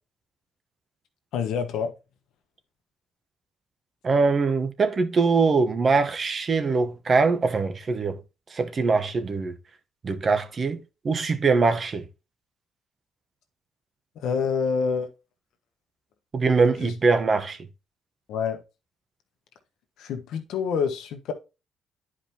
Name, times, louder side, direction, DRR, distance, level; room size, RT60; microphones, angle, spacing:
voice 1, 1.3-1.9 14.2-15.1 16.8-16.9 18.3-18.6 20.0-21.3, left 6 dB, 85° left, 1.2 m, -27 dB
voice 2, 4.0-8.2 8.5-9.5 10.0-12.0 16.3-17.6, right 4 dB, 40° right, 1.0 m, -22 dB
10.0 x 5.0 x 2.9 m
cardioid pair, 90°, 0 cm